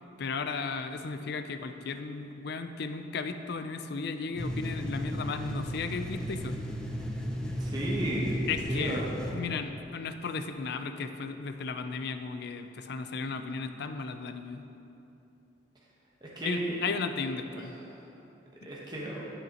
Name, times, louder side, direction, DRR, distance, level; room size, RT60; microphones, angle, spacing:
voice 1, 0.2-6.6 8.5-9.0 9.3-14.6 16.4-17.7 18.6-18.7, left 4 dB, 60° left, 8 dB, 0.4 m, -35 dB
sound 1, 4.4-9.3, equal, 5° left, 0.6 m, -35 dB
voice 2, 7.6-8.3 8.7-9.1 16.2-16.8 17.5-17.6 17.9-18.0 18.6-19.2, right 1 dB, 25° right, -5 dB, 1.0 m, -34 dB
12.0 x 6.4 x 2.9 m, 2.8 s
head